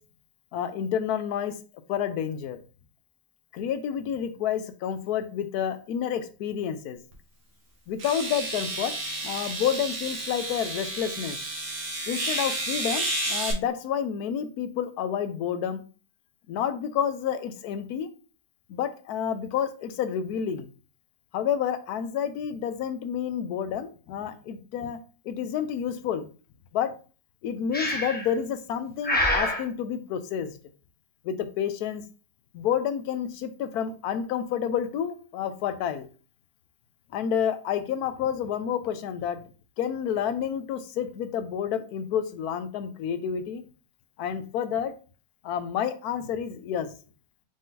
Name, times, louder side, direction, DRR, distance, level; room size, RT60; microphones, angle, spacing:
voice 1, 0.5-1.5 1.9-2.6 3.5-7.0 7.9-8.9 9.2-11.4 12.1-15.8 16.5-18.1 18.7-20.7 21.3-25.0 25.3-26.2 26.7-26.9 27.4-30.6 31.2-32.0 32.5-36.1 37.1-39.4 39.8-43.6 44.2-44.9 45.4-46.9, left 8 dB, 75° left, 10 dB, 1.1 m, -29 dB
sound 1, 7.1-7.2 8.0-13.5, right 2 dB, 90° right, 1.7 m, -31 dB
Breathing, 27.7-28.3 29.0-29.6, left 1 dB, 10° left, 0.7 m, -26 dB
5.1 x 2.7 x 3.7 m, 0.36 s
omnidirectional pair, 1.7 m